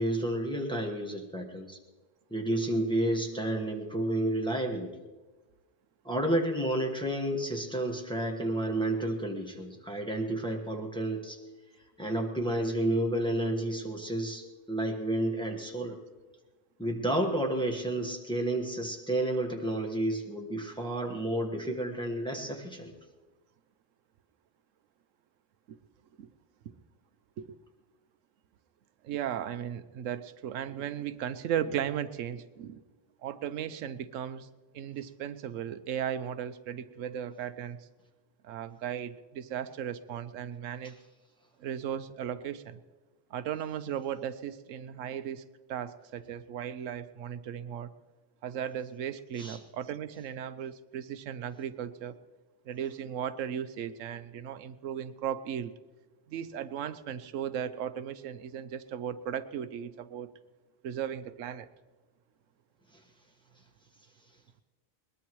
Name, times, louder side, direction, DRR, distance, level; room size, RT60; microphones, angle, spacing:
voice 1, 0.0-1.8 2.3-4.9 6.0-11.4 12.0-16.0 16.8-22.9 49.4-49.6, right 1 dB, 5° left, 1 dB, 1.3 m, -31 dB
voice 2, 29.0-32.8 33.2-34.5 34.7-37.9 38.4-41.0 41.6-42.8 43.3-45.4 45.7-47.9 48.4-52.2 52.7-55.7 56.3-60.3 60.8-61.7, right 9 dB, 85° right, 12 dB, 1.0 m, -36 dB
21.5 x 20.0 x 3.1 m, 1.2 s
omnidirectional pair, 1.3 m